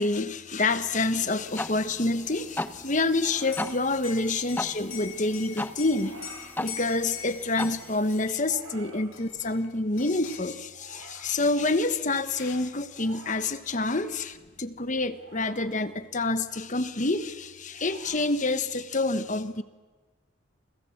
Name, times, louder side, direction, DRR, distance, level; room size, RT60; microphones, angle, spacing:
voice 1, 0.0-19.6, left 2 dB, 40° left, 11 dB, 1.3 m, -28 dB
sound 1, 0.7-0.9 3.1-3.8 5.9-6.5 8.3-9.1 10.7-11.3 12.8-13.5 15.1-15.7 17.7-18.3, right 3 dB, 90° right, 5.8 m, -48 dB
sound 2, 0.9-8.3, left 2 dB, 10° left, 0.8 m, -38 dB
Liquid, 3.4-8.7 9.1-9.7 10.0-10.6 11.7-11.8 12.1-12.7, left 8 dB, 80° left, 4.7 m, -43 dB
29.5 x 24.5 x 7.3 m, 1.3 s
head